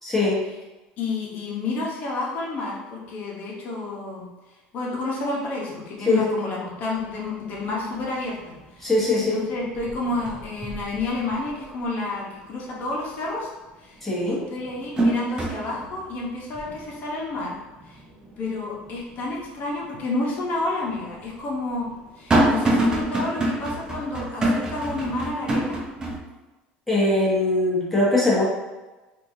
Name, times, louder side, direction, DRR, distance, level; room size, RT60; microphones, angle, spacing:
voice 1, 0.0-0.4 6.1-6.3 8.8-9.4 14.0-14.4 26.9-28.4, left 2 dB, 5° left, -7 dB, 1.2 m, -21 dB
voice 2, 1.0-4.3 4.7-13.5 13.8-14.0 14.2-17.5 17.9-18.0 18.4-21.9 22.2-25.8, left 2 dB, 50° left, -3 dB, 0.9 m, -30 dB
sound 1, 7.0-7.1 7.5-8.0 8.4-9.2 9.5-11.7 12.1-12.2 13.7-13.8 14.3-19.4 19.8-19.9 20.8-26.2, right 1 dB, 20° right, 0.6 m, -27 dB
3.2 x 2.6 x 2.7 m, 1.1 s
supercardioid pair, 120°, 4 cm